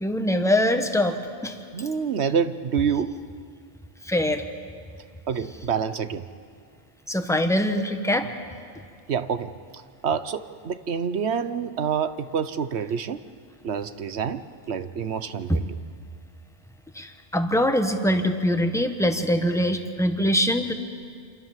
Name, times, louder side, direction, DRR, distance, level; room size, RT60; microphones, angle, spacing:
voice 1, 0.0-1.2 1.4-1.5 4.1-4.4 7.1-8.3 15.5-15.6 16.9-20.7, left 1 dB, 5° left, 6 dB, 1.5 m, -23 dB
voice 2, 1.7-3.2 5.3-6.2 9.1-13.2 13.6-15.7, right 7 dB, 75° right, 12 dB, 1.2 m, -27 dB
27.5 x 26.5 x 7.5 m, 2.2 s
omnidirectional pair, 1.1 m